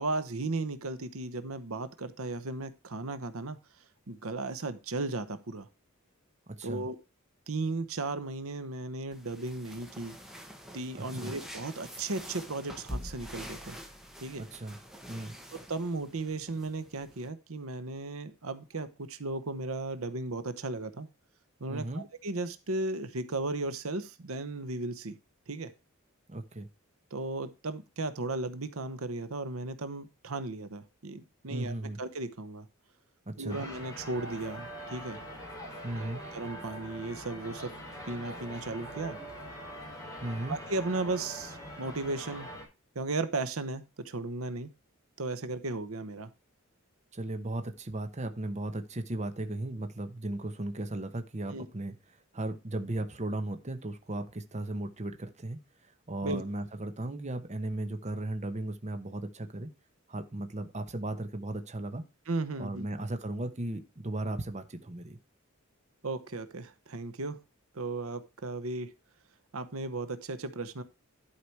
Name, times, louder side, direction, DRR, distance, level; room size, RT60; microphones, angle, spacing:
voice 1, 0.0-3.6 4.1-5.7 6.6-7.0 7.5-10.2 10.7-13.8 14.2-14.4 15.7-21.1 21.6-25.2 25.5-25.7 27.1-32.7 33.4-35.2 36.0-37.7 38.1-39.2 40.5-42.5 42.9-44.7 45.2-46.3 51.5-51.7 56.2-56.4 62.3-62.9 66.0-67.4 67.7-68.9 69.5-70.8, right 2 dB, 75° right, 12 dB, 1.0 m, -35 dB
sound 1, 9.1-17.3, equal, ahead, 1.5 m, -46 dB
voice 2, 10.9-11.3 14.4-14.8 15.1-15.3 21.7-22.0 26.3-26.7 31.5-32.0 33.3-33.6 35.8-36.2 40.2-40.6 47.1-51.9 52.3-55.6 56.1-59.7 60.1-62.0 62.6-65.2, right 1 dB, 35° right, 9 dB, 1.0 m, -36 dB
sound 2, 33.5-42.6, equal, 15° left, 3.7 m, -43 dB
11.5 x 5.0 x 4.6 m, 0.28 s
head